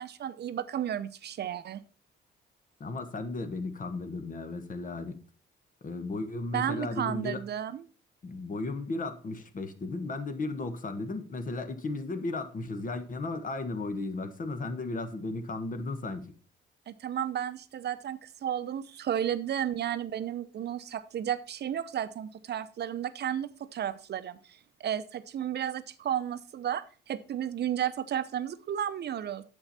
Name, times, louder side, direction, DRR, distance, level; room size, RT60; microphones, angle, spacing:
voice 1, 0.0-1.8 6.5-7.8 16.9-29.4, right 10 dB, 55° right, 0.7 m, -33 dB
voice 2, 2.8-5.2 5.8-7.4 8.2-16.3, left 3 dB, 40° left, 1.3 m, -35 dB
8.9 x 7.0 x 4.2 m
cardioid pair, 90°, 20 cm